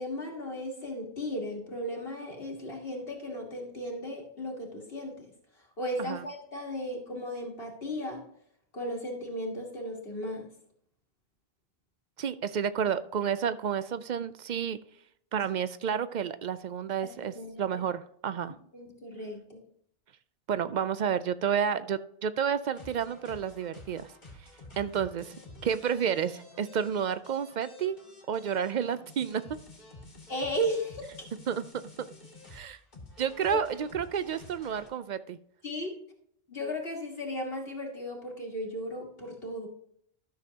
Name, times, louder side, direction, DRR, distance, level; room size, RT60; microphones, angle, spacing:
voice 1, 0.0-5.3 5.8-8.2 8.7-10.5 17.0-17.8 18.7-19.6 30.3-31.1 33.4-33.6 35.6-35.9 36.5-39.7, equal, 65° left, 0 dB, 1.9 m, -35 dB
voice 2, 12.2-14.8 15.3-18.5 20.5-24.1 24.8-25.3 25.6-28.0 28.3-29.4 31.5-31.6 32.5-32.8 33.2-35.4, right 8 dB, 55° right, 14 dB, 0.5 m, -30 dB
sound 1, 22.7-34.9, left 2 dB, 45° left, 1.9 m, -50 dB
13.0 x 6.5 x 2.8 m, 0.67 s
omnidirectional pair, 1.1 m